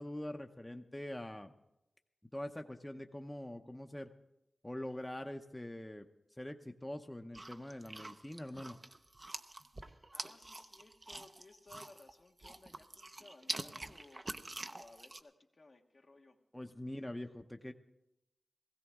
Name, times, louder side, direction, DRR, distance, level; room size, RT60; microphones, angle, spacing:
voice 1, 0.0-1.5 2.3-4.1 4.6-6.1 6.4-8.8 16.5-17.7, left 1 dB, 15° left, 6 dB, 0.8 m, -44 dB
sound 1, 7.3-12.1 12.4-15.2, right 2 dB, 40° right, 0.7 m, -45 dB
voice 2, 10.1-14.3 14.7-16.4, left 3 dB, 65° left, 3 dB, 1.2 m, -60 dB
17.0 x 15.5 x 3.6 m, 0.88 s
cardioid pair, 45°, 0 cm